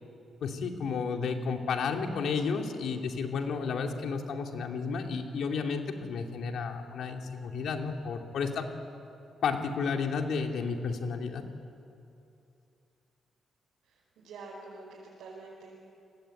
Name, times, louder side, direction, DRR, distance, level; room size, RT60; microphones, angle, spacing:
voice 1, 0.4-8.7 9.4-11.4, left 5 dB, 65° left, 3 dB, 2.5 m, -32 dB
voice 2, 13.9-15.8, right 3 dB, 90° right, -4 dB, 5.3 m, -47 dB
30.0 x 20.0 x 9.0 m, 2.7 s
cardioid pair, 150°, 0 cm